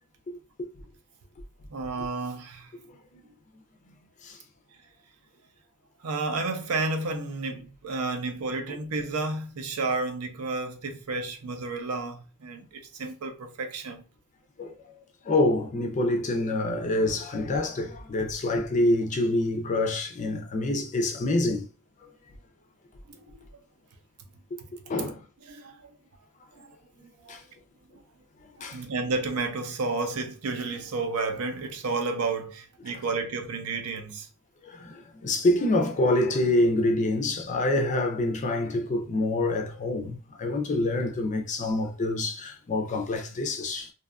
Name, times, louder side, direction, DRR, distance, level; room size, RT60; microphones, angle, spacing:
voice 1, 1.7-2.7 6.0-14.0 23.1-23.4 24.6-24.7 25.4-25.9 26.5-26.7 27.2-27.4 28.6-34.3, right 3 dB, 75° right, 0.5 m, -31 dB
voice 2, 15.2-21.6 24.9-25.2 27.0-27.4 28.6-28.8 34.6-43.9, left 2 dB, 35° left, 0.4 m, -26 dB
2.6 x 2.3 x 2.4 m
head